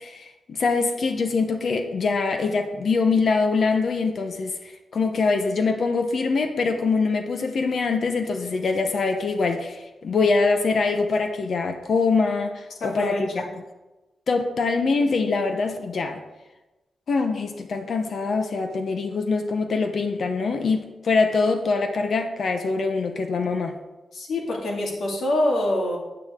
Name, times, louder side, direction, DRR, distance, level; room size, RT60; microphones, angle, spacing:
voice 1, 0.0-13.4 14.3-16.2 17.1-23.8, left 4 dB, 55° left, 6 dB, 0.8 m, -24 dB
voice 2, 12.8-13.5 24.1-26.0, left 1 dB, 85° left, -2 dB, 2.2 m, -25 dB
9.5 x 8.6 x 3.6 m, 1.1 s
wide cardioid pair, 160°, 0 cm